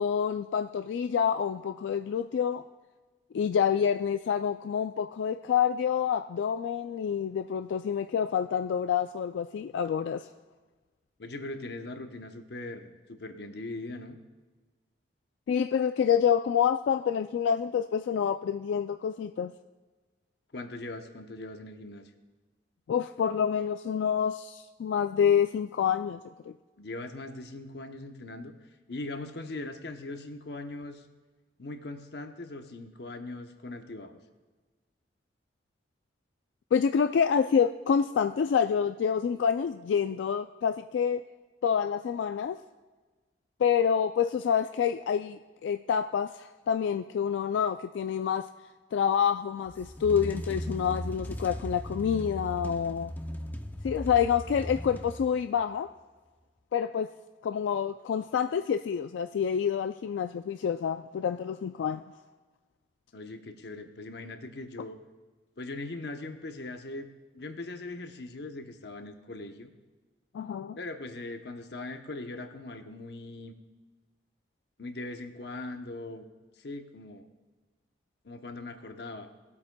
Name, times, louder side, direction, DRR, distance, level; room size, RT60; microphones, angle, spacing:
voice 1, 0.0-2.6 3.3-10.3 15.5-19.5 22.9-26.2 26.5-26.6 36.7-41.2 41.6-42.6 43.6-48.5 48.9-53.1 53.8-55.9 56.7-57.1 57.4-62.0 70.3-70.8, left 7 dB, 85° left, 8 dB, 0.3 m, -27 dB
voice 2, 11.2-14.2 20.5-22.1 26.8-28.5 28.9-31.0 31.6-34.2 63.1-65.0 65.6-67.1 67.3-69.7 70.8-73.5 74.8-76.2 76.6-77.2 78.2-79.3, left 2 dB, 65° left, 6 dB, 0.8 m, -40 dB
sound 1, 49.7-55.6, equal, 10° left, 0.4 m, -38 dB
18.5 x 8.4 x 2.2 m, 1.3 s
head